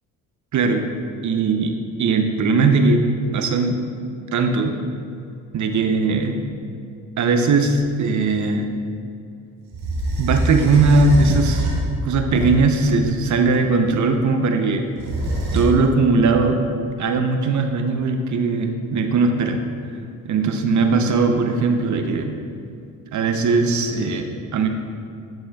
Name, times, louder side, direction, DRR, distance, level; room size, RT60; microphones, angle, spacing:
voice 1, 0.5-0.9 1.2-3.1 3.3-3.8 4.3-4.7 5.5-6.4 7.2-8.7 10.2-11.6 12.0-14.9 15.5-16.6 17.0-19.6 20.2-22.3 23.1-24.7, right 3 dB, 50° right, 5 dB, 0.8 m, -19 dB
sound 1, 9.7-13.4 15.0-15.6, right 1 dB, 65° right, 1.2 m, -24 dB
12.0 x 4.2 x 2.3 m, 2.5 s
hypercardioid pair, 50°, 39 cm